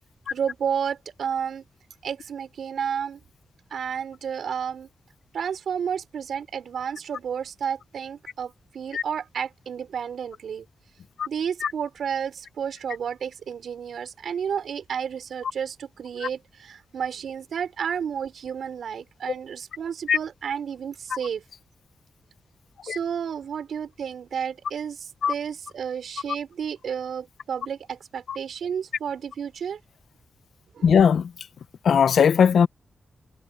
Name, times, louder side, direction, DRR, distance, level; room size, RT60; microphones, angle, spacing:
voice 1, 0.3-1.6 2.0-3.2 3.7-4.9 5.3-10.7 11.3-21.4 22.8-29.8 30.7-31.0, right 7 dB, 90° right, 5.9 m, -31 dB
voice 2, 30.8-31.2 31.8-32.7, left 7 dB, 80° left, 0.9 m, -18 dB
wide cardioid pair, 165°, 0 cm